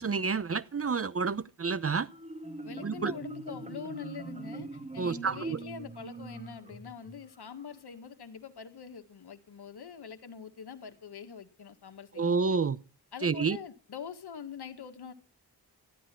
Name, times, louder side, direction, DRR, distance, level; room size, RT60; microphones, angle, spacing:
voice 1, 0.0-2.1 2.8-3.1 5.0-5.6 12.2-12.8 13.2-13.6, right 5 dB, 35° right, 0.7 m, -29 dB
Marimba xylophone, 2.1-7.6, right 3 dB, 15° right, 1.6 m, -43 dB
voice 2, 2.6-12.6 13.1-15.1, left 6 dB, 70° left, 1.8 m, -44 dB
14.0 x 12.0 x 4.5 m
wide cardioid pair, 105°, 41 cm